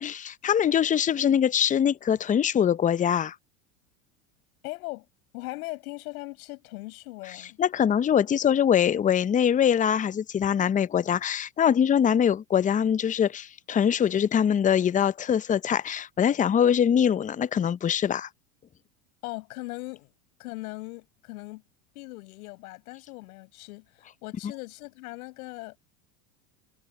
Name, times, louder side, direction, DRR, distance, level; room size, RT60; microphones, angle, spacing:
voice 1, 0.0-3.3 7.6-18.3, left 8 dB, 20° left, 0.6 m, -23 dB
voice 2, 4.6-5.1 5.3-7.6 19.2-20.1 20.4-21.6 21.9-25.8, left 22 dB, 70° left, 6.5 m, -39 dB
hypercardioid pair, 95°, 44 cm